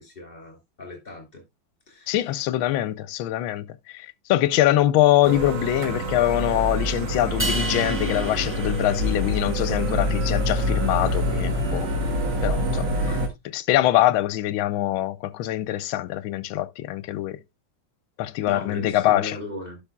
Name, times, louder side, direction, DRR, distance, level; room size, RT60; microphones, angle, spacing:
voice 1, 0.0-1.4 1.9-2.1 13.1-13.2 18.4-19.8, left 2 dB, 25° left, 2.8 m, -37 dB
voice 2, 2.1-11.9 12.4-12.9 13.5-17.4 18.2-19.4, left 14 dB, 80° left, 1.4 m, -23 dB
sound 1, 5.2-13.3, equal, 60° right, 2.0 m, -26 dB
sound 2, 7.4-9.7, right 1 dB, 10° right, 0.7 m, -32 dB
12.0 x 6.1 x 2.2 m
omnidirectional pair, 2.3 m